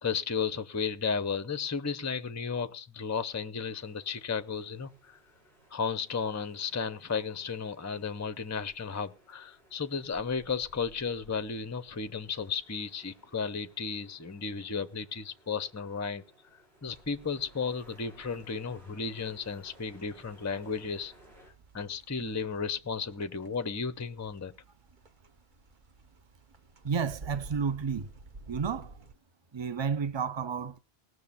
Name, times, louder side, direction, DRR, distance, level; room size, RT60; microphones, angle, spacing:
voice 1, 0.0-5.2 5.7-16.2 16.8-21.1 21.7-24.5, left 5 dB, 20° left, 0.6 m, -34 dB
sound 1, 3.8-21.5, equal, 70° right, 6.8 m, -60 dB
sound 2, 16.8-29.1, right 3 dB, 50° right, 1.2 m, -53 dB
voice 2, 26.8-28.1 28.5-29.0 29.5-30.8, right 6 dB, 30° right, 0.7 m, -31 dB
18.0 x 6.3 x 7.0 m
omnidirectional pair, 1.1 m